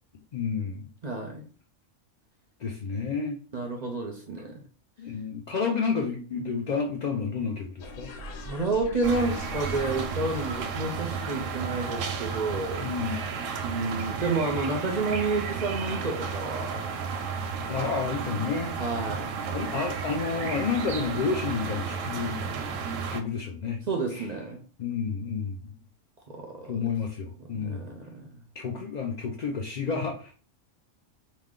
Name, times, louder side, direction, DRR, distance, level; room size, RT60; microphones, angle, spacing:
voice 1, 0.3-0.9 2.6-3.4 5.0-8.1 12.8-13.3 17.7-18.8 19.5-22.4 23.1-23.8 24.1-24.3 24.8-25.7 26.7-27.9 28.5-30.3, left 5 dB, 55° left, 0.4 m, -30 dB
voice 2, 1.0-1.4 3.5-4.6 8.4-12.9 13.6-16.9 18.8-19.4 23.9-24.6 26.3-26.8 27.5-28.3, right 3 dB, 50° right, 0.5 m, -30 dB
sound 1, 7.8-13.3, left 2 dB, 85° left, 1.1 m, -43 dB
sound 2, 9.0-23.2, right 5 dB, 85° right, 1.0 m, -33 dB
4.9 x 2.2 x 3.7 m
omnidirectional pair, 1.3 m